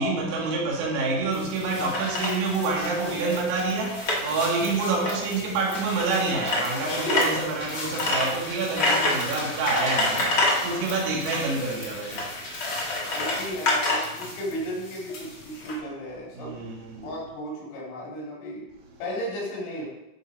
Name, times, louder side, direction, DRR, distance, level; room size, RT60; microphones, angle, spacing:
voice 1, 0.0-12.3 16.3-17.1, right 3 dB, 85° right, 4.8 m, -27 dB
sound 1, 1.3-15.7, left 2 dB, 55° left, 1.3 m, -29 dB
voice 2, 13.1-16.6 17.0-18.7 19.0-19.9, equal, 75° left, 6.2 m, -34 dB
14.0 x 5.7 x 4.8 m
omnidirectional pair, 5.8 m